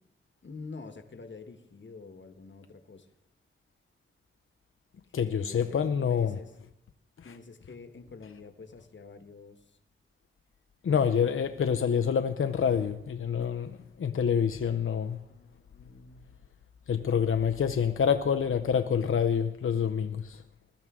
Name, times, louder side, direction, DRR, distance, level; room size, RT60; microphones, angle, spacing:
voice 1, 0.4-3.1 5.0-5.8 6.0-6.5 7.2-9.8 15.3-16.3, left 4 dB, 60° left, 1.2 m, -47 dB
voice 2, 5.1-6.4 7.2-7.3 10.8-15.2 16.9-20.4, left 7 dB, 80° left, 0.6 m, -27 dB
20.5 x 12.5 x 3.6 m
wide cardioid pair, 65°, 21 cm